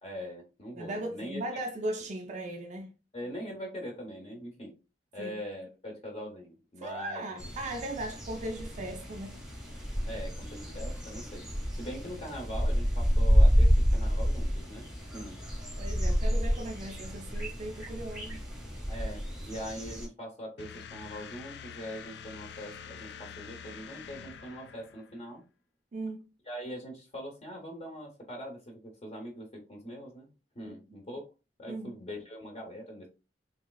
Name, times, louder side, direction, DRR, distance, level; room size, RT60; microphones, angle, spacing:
voice 1, 0.0-1.4 3.1-4.7 5.1-7.5 10.0-11.4 11.8-15.4 18.9-25.4 26.5-30.3 30.5-31.2 31.6-33.1, equal, 35° left, 0.7 m, -42 dB
voice 2, 0.7-2.9 5.2-5.3 6.8-9.4 15.8-18.4 25.9-26.3 30.6-30.8 31.7-32.0, right 1 dB, 40° right, 0.4 m, -38 dB
sound 1, 7.4-20.1, equal, 5° right, 0.8 m, -29 dB
sound 2, 20.6-25.3, left 7 dB, 65° left, 0.3 m, -46 dB
3.1 x 2.9 x 2.3 m
head